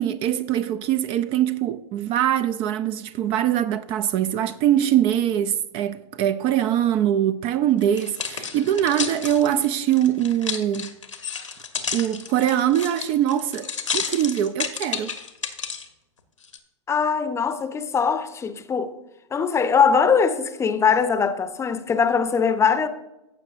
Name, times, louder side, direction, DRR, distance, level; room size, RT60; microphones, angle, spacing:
voice 1, 0.0-10.9 11.9-15.1, right 11 dB, 35° right, 0.4 m, -23 dB
sound 1, 7.8-15.9 16.4-16.6, left 6 dB, 85° left, 1.2 m, -31 dB
voice 2, 16.9-18.9 19.3-22.9, left 6 dB, 15° left, 0.7 m, -21 dB
15.5 x 7.3 x 2.5 m
figure-of-eight pair, 100°, 16 cm